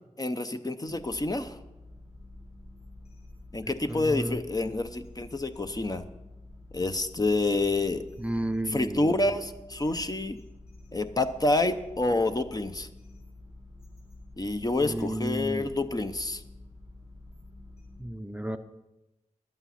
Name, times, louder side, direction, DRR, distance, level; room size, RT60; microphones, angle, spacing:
voice 1, 0.2-1.6 3.5-6.1 6.7-8.0 8.7-10.4 10.9-12.9 14.4-16.4, left 2 dB, 30° left, 8 dB, 0.7 m, -28 dB
sound 1, 0.9-18.0, left 2 dB, 55° left, 5.3 m, -49 dB
voice 2, 3.6-4.4 8.2-9.4 14.9-15.7 18.0-18.6, right 1 dB, 10° right, 8 dB, 0.6 m, -33 dB
11.5 x 8.7 x 5.7 m, 1.0 s
wide cardioid pair, 70°, 13 cm